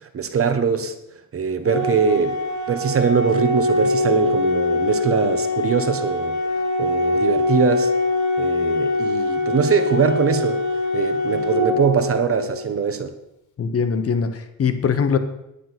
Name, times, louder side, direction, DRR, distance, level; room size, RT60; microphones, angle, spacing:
voice 1, 0.1-0.9 1.3-2.4 2.7-6.3 6.8-7.9 8.4-10.6 10.9-13.1, right 6 dB, 45° right, 9 dB, 1.3 m, -22 dB
Organ, 1.7-12.6, left 2 dB, 70° left, 2.6 m, -23 dB
voice 2, 13.6-15.2, left 6 dB, 50° left, 10 dB, 1.2 m, -21 dB
10.0 x 9.1 x 6.0 m, 0.84 s
cardioid pair, 110°, 31 cm